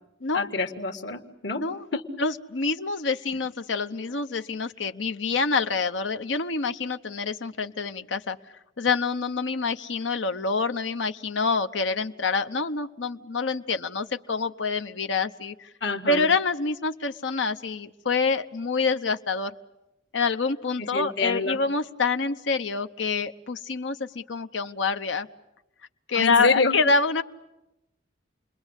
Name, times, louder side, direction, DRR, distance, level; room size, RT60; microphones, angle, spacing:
voice 1, 0.3-1.6 1.9-2.0 15.8-16.3 20.9-21.6 26.1-26.8, left 3 dB, 70° left, 7 dB, 1.9 m, -27 dB
voice 2, 1.6-1.9 2.2-8.4 8.8-15.7 16.1-19.5 20.1-25.3 26.1-27.2, left 4 dB, 90° left, 9 dB, 0.9 m, -26 dB
29.5 x 22.0 x 8.2 m, 0.92 s
head